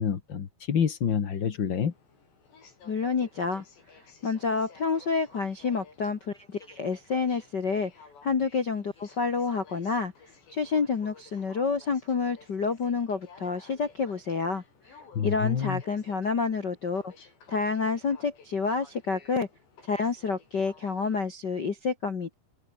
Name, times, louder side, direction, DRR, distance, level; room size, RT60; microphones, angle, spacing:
voice 1, 0.0-1.9 15.1-15.8, left 7 dB, 55° left, 1.3 m, -27 dB
Aircraft, 1.8-21.2, left 5 dB, 90° left, 8.6 m, -55 dB
voice 2, 2.8-3.6 4.2-7.9 8.2-10.1 10.5-14.6 15.2-17.1 17.5-19.5 19.9-22.3, left 5 dB, 70° left, 1.0 m, -28 dB
open air
omnidirectional pair, 4.8 m